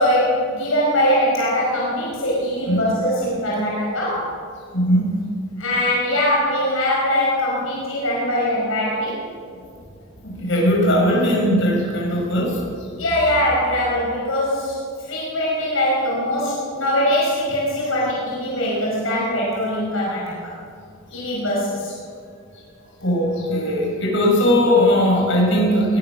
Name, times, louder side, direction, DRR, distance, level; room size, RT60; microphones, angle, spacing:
voice 1, 0.0-4.3 5.6-9.2 13.0-14.8 15.1-20.5 21.1-21.9, left 1 dB, 80° left, -5 dB, 5.3 m, -22 dB
voice 2, 4.7-5.2 10.2-12.6 21.1-21.3 23.0-26.0, equal, 60° left, -2 dB, 6.3 m, -19 dB
21.0 x 20.0 x 6.5 m, 2.2 s
head